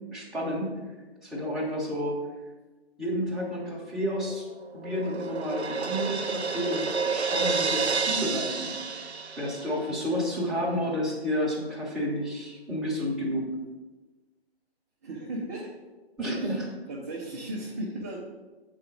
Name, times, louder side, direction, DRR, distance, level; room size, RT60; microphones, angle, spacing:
voice 1, 0.1-0.7 1.2-2.2 3.0-4.5 4.7-9.0 9.4-13.5 16.2-16.7, equal, ahead, -7 dB, 1.0 m, -30 dB
Crash cymbal, 4.3-10.0, right 4 dB, 80° right, 0.6 m, -30 dB
voice 2, 15.0-15.7 16.3-16.6 16.9-18.2, right 1 dB, 15° right, -4 dB, 0.5 m, -36 dB
7.5 x 3.8 x 5.2 m, 1.2 s
figure-of-eight pair, 135°, 32 cm